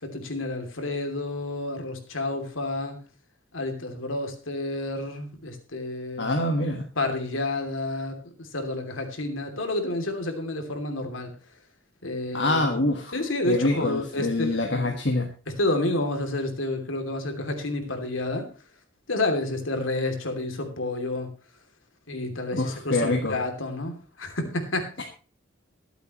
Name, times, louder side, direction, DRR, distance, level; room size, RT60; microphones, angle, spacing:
voice 1, 0.0-3.0 3.5-6.3 7.0-11.3 12.0-14.9 15.6-18.5 19.1-21.3 22.1-24.9, left 2 dB, 85° left, 5 dB, 2.9 m, -30 dB
voice 2, 6.2-6.9 12.3-13.1 13.5-15.3 22.5-23.4, left 2 dB, 60° left, 2 dB, 1.7 m, -25 dB
23.0 x 8.1 x 3.1 m, 0.36 s
head